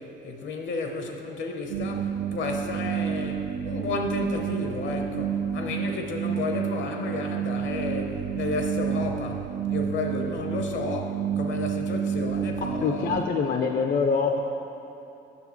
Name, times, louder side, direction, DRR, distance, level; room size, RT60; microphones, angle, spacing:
voice 1, 0.0-13.2, left 3 dB, 70° left, 3 dB, 0.8 m, -32 dB
sound 1, 1.7-13.2, right 8 dB, 55° right, 0.5 m, -29 dB
voice 2, 12.8-14.4, left 5 dB, 45° left, 4 dB, 0.4 m, -24 dB
8.3 x 6.5 x 3.0 m, 2.9 s
cardioid pair, 90°, 20 cm